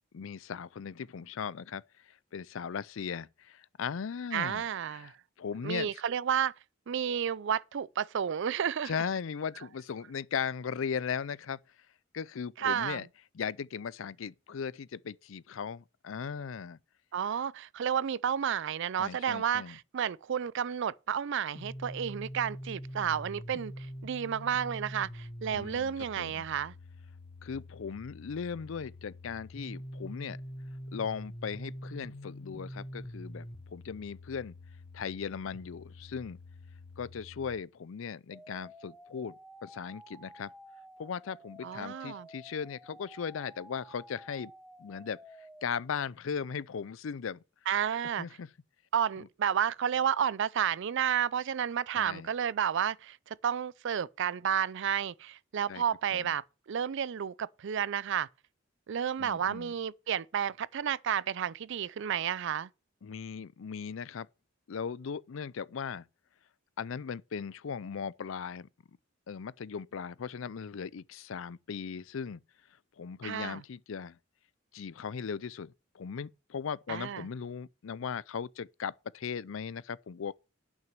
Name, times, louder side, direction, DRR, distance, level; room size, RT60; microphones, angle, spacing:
voice 1, 0.1-5.9 8.8-11.6 12.1-13.1 13.3-16.8 19.0-19.8 25.5-26.5 27.4-30.4 30.9-34.6 34.9-36.4 37.0-39.4 39.6-40.5 41.0-44.5 44.8-45.2 45.6-47.4 48.2-48.5 51.9-52.3 55.7-55.8 56.1-56.3 59.2-59.7 63.0-64.3 64.7-66.1 66.8-68.7 69.3-72.4 73.0-74.2 74.7-80.3, left 6 dB, 65° left, 0.5 m, -38 dB
voice 2, 4.3-5.1 5.6-6.5 6.9-8.9 12.6-13.0 17.1-26.7 41.6-42.3 47.7-48.3 48.9-58.3 58.9-62.7 73.2-73.6 76.9-77.2, right 8 dB, 60° right, 0.4 m, -31 dB
sound 1, 21.5-37.6, left 1 dB, 25° left, 0.8 m, -45 dB
sound 2, 38.3-45.7, equal, ahead, 1.0 m, -53 dB
9.0 x 6.1 x 7.3 m
head